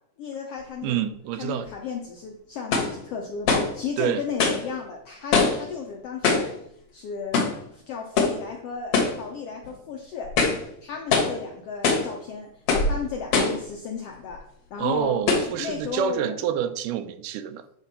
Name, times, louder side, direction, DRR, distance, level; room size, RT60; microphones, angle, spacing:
voice 1, 0.2-1.0 1.4-6.5 6.9-7.4 7.7-10.3 10.8-14.4 14.7-16.4, left 6 dB, 80° left, 1.4 m, -34 dB
voice 2, 0.8-1.7 4.0-4.2 14.8-17.6, right 9 dB, 90° right, 2.2 m, -27 dB
sound 1, 1.7-1.8 2.7-3.0 3.4-3.8 4.4-4.7 5.3-5.7 6.2-6.5 7.3-7.6 8.2-8.4 8.9-9.2 9.6-9.7 10.2-10.7 11.1-11.4 11.8-12.1 12.7-13.0 13.3-13.6 14.3-14.4 15.3-15.5, left 4 dB, 60° left, 1.9 m, -22 dB
8.2 x 5.2 x 4.1 m
omnidirectional pair, 3.6 m